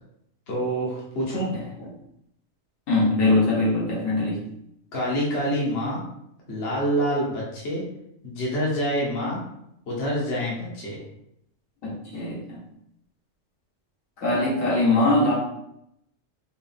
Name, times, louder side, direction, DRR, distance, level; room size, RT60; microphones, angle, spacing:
voice 1, 0.5-1.5 4.9-6.0 6.5-7.8 8.2-9.4 9.9-11.0, equal, 55° left, -5 dB, 1.2 m, -26 dB
voice 2, 2.9-4.4 11.8-12.6 14.2-15.3, left 2 dB, 80° left, -6 dB, 1.6 m, -22 dB
4.9 x 2.0 x 3.5 m, 0.78 s
omnidirectional pair, 1.3 m